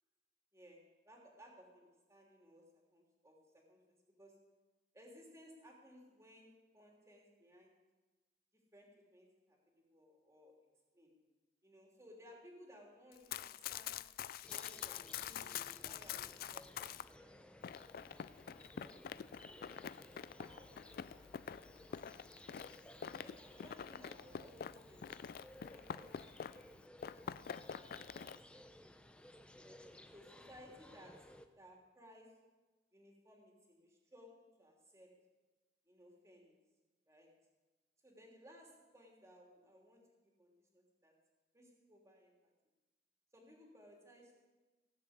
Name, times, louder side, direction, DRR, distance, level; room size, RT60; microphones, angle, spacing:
voice 1, 0.5-3.8 4.2-4.5 4.9-7.8 8.7-10.6 10.9-11.2 11.6-14.0 14.5-17.5 18.1-21.7 23.2-25.1 25.7-26.8 27.2-28.6 29.5-32.4 32.9-35.2 35.9-36.5 37.1-37.4 38.0-41.2 41.5-42.3 43.3-44.5, equal, 15° right, -1 dB, 3.0 m, -61 dB
Run, 13.1-17.1 17.6-26.7 27.0-28.4, left 8 dB, 55° left, 0.3 m, -46 dB
sound 1, 14.4-31.5, left 1 dB, 5° left, 0.7 m, -59 dB
17.5 x 7.1 x 8.0 m, 1.2 s
head